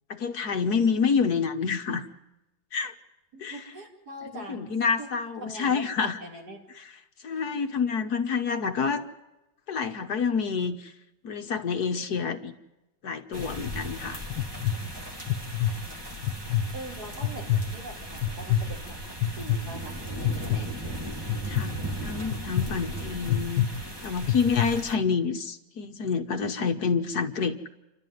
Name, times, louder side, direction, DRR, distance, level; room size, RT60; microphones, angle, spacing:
voice 1, 0.1-2.1 2.7-2.9 3.4-3.6 4.5-6.2 7.2-9.0 9.7-10.9 11.2-12.5 13.0-14.2 21.5-23.7 24.0-27.7, left 5 dB, 60° left, 7 dB, 1.6 m, -28 dB
voice 2, 3.3-4.7 5.0-5.1 5.4-6.6 16.7-20.0 20.3-20.7, right 1 dB, 55° right, -1 dB, 5.3 m, -42 dB
sound 1, 13.3-24.9, right 1 dB, 15° right, 2.4 m, -37 dB
sound 2, 13.4-13.7 14.3-14.8 15.3-15.7 16.2-16.7 17.2-17.6 18.2-18.6 19.2-19.6 20.2-20.6 21.3-21.6 22.3-22.6 23.3-23.7 24.2-24.7, left 11 dB, 85° left, 1.7 m, -25 dB
29.0 x 12.5 x 9.4 m, 0.99 s
omnidirectional pair, 1.9 m